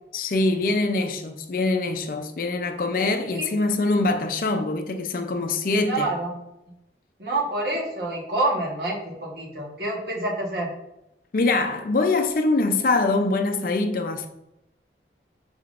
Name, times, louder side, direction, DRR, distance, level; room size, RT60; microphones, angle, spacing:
voice 1, 0.1-6.1 11.3-14.3, left 3 dB, 50° left, 0.4 m, -24 dB
voice 2, 5.8-6.4 7.2-10.7, right 2 dB, 60° right, 1.1 m, -27 dB
5.6 x 3.6 x 2.4 m
head